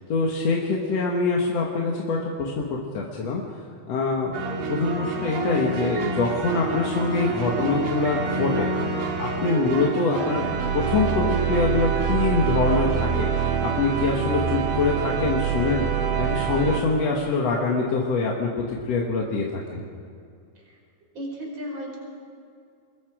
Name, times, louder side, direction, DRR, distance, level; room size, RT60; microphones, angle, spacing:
voice 1, 0.1-3.4 3.9-4.3 4.7-8.7 9.0-15.9 16.2-19.9, left 4 dB, 60° left, -2 dB, 2.6 m, -25 dB
sound 1, 4.3-16.8, right 6 dB, 85° right, 3.5 m, -26 dB
voice 2, 21.1-22.0, equal, 35° right, -1 dB, 5.6 m, -34 dB
27.0 x 21.0 x 5.0 m, 2.4 s
omnidirectional pair, 3.5 m